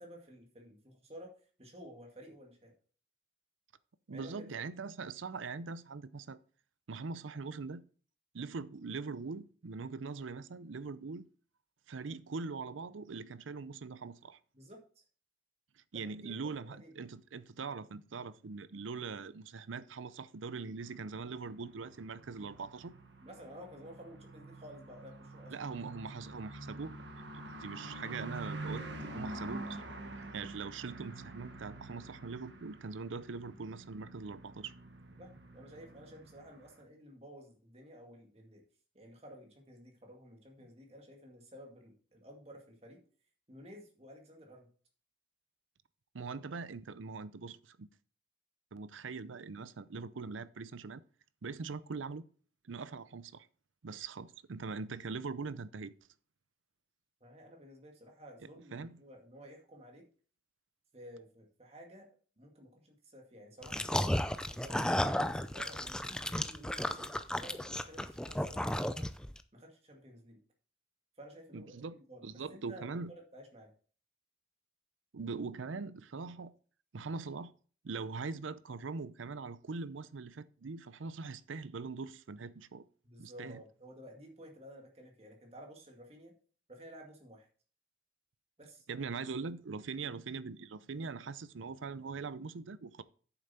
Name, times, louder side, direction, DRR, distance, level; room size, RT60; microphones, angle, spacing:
voice 1, 0.0-1.3 1.6-2.7 4.1-4.5 14.5-15.0 15.9-16.4 16.7-16.9 23.2-25.5 35.2-38.6 38.9-43.0 43.5-44.7 57.2-60.1 60.9-62.1 62.4-64.1 64.5-69.1 69.5-70.4 71.2-71.7 72.1-73.7 83.0-86.3 86.7-87.5 88.6-88.9, equal, 30° right, 2.1 m, -53 dB
voice 2, 4.1-6.4 6.9-7.8 8.3-11.2 11.9-14.4 15.9-22.9 25.5-29.8 30.3-34.7 46.1-47.9 48.7-51.0 51.4-52.2 52.7-53.5 53.8-55.9 58.7-59.0 71.5-71.9 72.2-73.1 75.1-76.5 76.9-77.5 77.8-82.8 83.2-83.6 88.9-93.0, right 4 dB, 90° right, 0.6 m, -42 dB
sound 1, 20.8-36.8, right 2 dB, 70° right, 1.5 m, -47 dB
sound 2, 63.6-69.4, left 1 dB, 5° left, 0.4 m, -34 dB
8.7 x 7.0 x 4.3 m
head